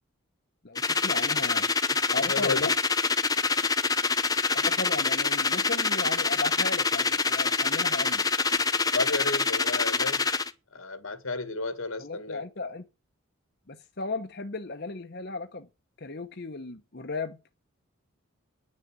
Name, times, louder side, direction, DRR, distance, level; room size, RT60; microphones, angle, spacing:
voice 1, 0.6-1.7 2.1-2.7 4.5-8.2 12.0-12.8 13.7-15.7 16.0-17.5, left 3 dB, 50° left, 1.0 m, -35 dB
sound 1, 0.8-10.5, left 4 dB, 15° left, 0.7 m, -26 dB
voice 2, 2.3-2.7 8.9-10.3 10.7-12.4, left 3 dB, 75° left, 1.8 m, -32 dB
10.0 x 6.4 x 8.9 m
head